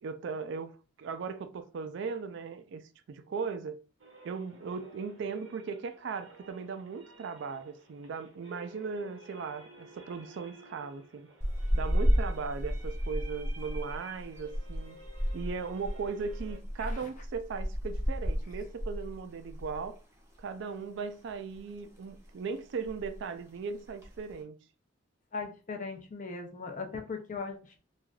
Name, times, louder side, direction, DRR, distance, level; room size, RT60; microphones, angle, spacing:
voice 1, 0.0-2.8 3.1-3.8 4.2-11.3 11.7-15.0 15.3-20.0 20.4-24.6, right 5 dB, 65° right, 0.3 m, -38 dB
sound 1, 4.0-16.6, right 2 dB, 90° right, 0.9 m, -54 dB
Caida de rio, 11.4-19.9 20.2-20.4 20.8-21.6 22.0-22.3 22.6-22.7 22.8-23.3 23.8-24.3, equal, 15° right, 0.6 m, -32 dB
voice 2, 25.3-27.8, left 4 dB, 40° left, 0.5 m, -39 dB
3.1 x 2.4 x 2.3 m
head